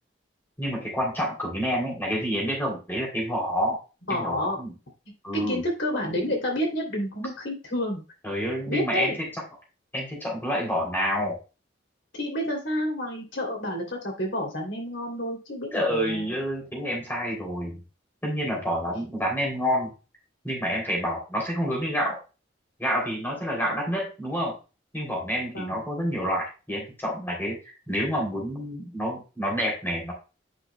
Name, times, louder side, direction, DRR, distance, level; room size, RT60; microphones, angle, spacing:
voice 1, 0.6-3.8 4.1-4.7 5.2-5.6 8.2-9.3 9.9-11.4 15.7-17.8 18.2-19.9 20.4-22.2 22.8-24.6 24.9-30.1, equal, 10° left, -2 dB, 3.0 m, -28 dB
voice 2, 4.1-4.6 5.3-8.0 8.7-9.2 12.1-16.3 25.5-25.8, equal, 90° left, 1 dB, 2.9 m, -29 dB
8.6 x 5.8 x 2.2 m, 0.30 s
head